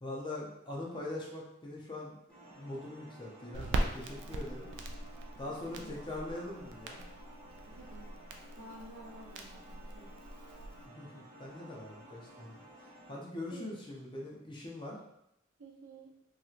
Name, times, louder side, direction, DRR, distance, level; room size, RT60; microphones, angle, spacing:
voice 1, 0.0-2.2 2.5-4.7 5.4-7.0 10.9-12.5 13.1-15.0, left 2 dB, 25° left, -3 dB, 0.6 m, -42 dB
sound 1, 2.3-13.2, right 1 dB, ahead, 1.4 m, -54 dB
Crackle, 3.5-10.8, right 2 dB, 60° right, 0.4 m, -40 dB
voice 2, 5.4-6.0 7.6-8.1 8.5-10.2 13.5-13.8 15.6-16.1, right 2 dB, 85° right, -2 dB, 0.7 m, -52 dB
2.9 x 2.9 x 2.4 m, 0.80 s
head